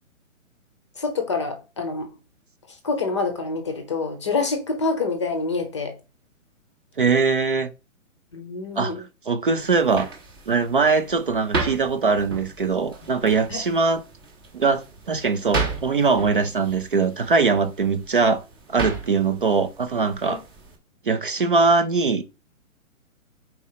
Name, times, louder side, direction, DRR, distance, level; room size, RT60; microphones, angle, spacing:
voice 1, 1.0-2.1 2.8-5.9 8.3-9.0 13.5-13.6 20.3-20.4, left 3 dB, 20° left, 0.7 m, -26 dB
voice 2, 7.0-7.7 8.8-8.9 9.3-10.1 10.5-14.0 14.5-18.4 18.7-20.4 21.1-22.2, right 4 dB, 40° right, 0.5 m, -21 dB
sound 1, 9.6-20.8, right 3 dB, 15° right, 0.8 m, -34 dB
4.3 x 4.2 x 5.6 m
hypercardioid pair, 170°, 41 cm